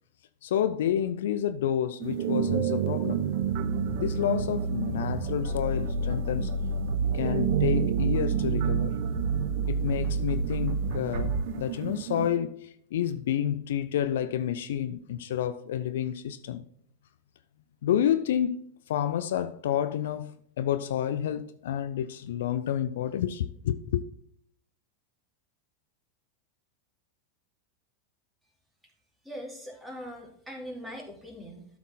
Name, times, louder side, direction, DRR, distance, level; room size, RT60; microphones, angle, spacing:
voice 1, 0.4-3.2 3.9-6.5 7.1-8.9 9.7-16.6 17.8-18.6 18.9-24.0, left 10 dB, 65° left, 0.4 m, -29 dB
sound 1, 2.0-12.3, right 10 dB, 55° right, 0.6 m, -32 dB
sound 2, 3.4-11.4, right 3 dB, 85° right, 1.6 m, -29 dB
voice 2, 29.2-31.7, equal, 5° right, 2.7 m, -41 dB
12.5 x 4.3 x 4.0 m
figure-of-eight pair, 90°, 0 cm